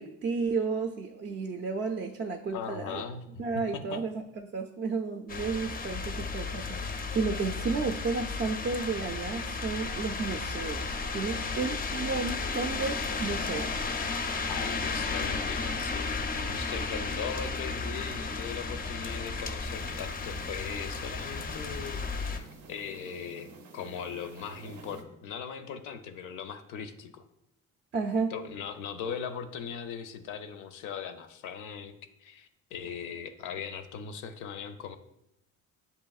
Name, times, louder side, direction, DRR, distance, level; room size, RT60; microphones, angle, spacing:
voice 1, 0.0-3.0 3.4-13.9 27.9-28.3, right 4 dB, 40° right, 5 dB, 0.4 m, -32 dB
voice 2, 2.5-4.0 14.5-27.2 28.3-35.0, left 7 dB, 85° left, 9 dB, 0.5 m, -39 dB
sound 1, 5.3-22.4, left 4 dB, 30° left, 0.4 m, -34 dB
sound 2, 19.6-25.0, right 3 dB, 85° right, 0.6 m, -50 dB
7.5 x 2.8 x 2.3 m, 0.84 s
cardioid pair, 90°, 30 cm